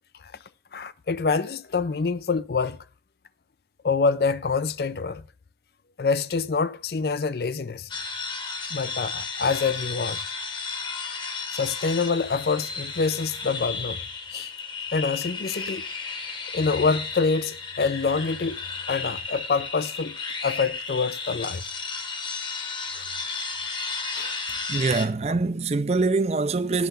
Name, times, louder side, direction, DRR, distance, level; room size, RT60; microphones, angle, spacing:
voice 1, 0.7-2.8 3.8-5.2 6.0-7.9 8.7-10.2 11.5-14.0 14.3-14.5 14.9-15.8 16.5-18.6 18.9-21.6 22.9-23.1 24.1-24.4, left 4 dB, 60° left, 0.5 m, -26 dB
sound 1, 7.9-25.1, left 4 dB, 25° left, 1.0 m, -33 dB
voice 2, 24.7-26.9, right 3 dB, 35° right, 0.4 m, -24 dB
8.4 x 6.6 x 5.7 m
head